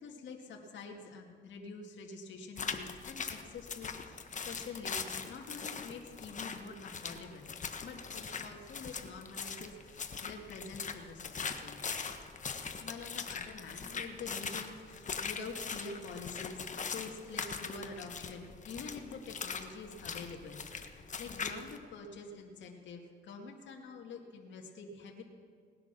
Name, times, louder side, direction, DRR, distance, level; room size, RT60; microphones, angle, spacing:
voice 1, 0.0-7.5 7.8-11.8 12.8-25.2, left 4 dB, 65° left, 0 dB, 2.2 m, -47 dB
sound 1, 2.6-21.8, left 5 dB, 40° left, 1.3 m, -41 dB
19.0 x 9.9 x 6.9 m, 2.2 s
cardioid pair, 90°, 20 cm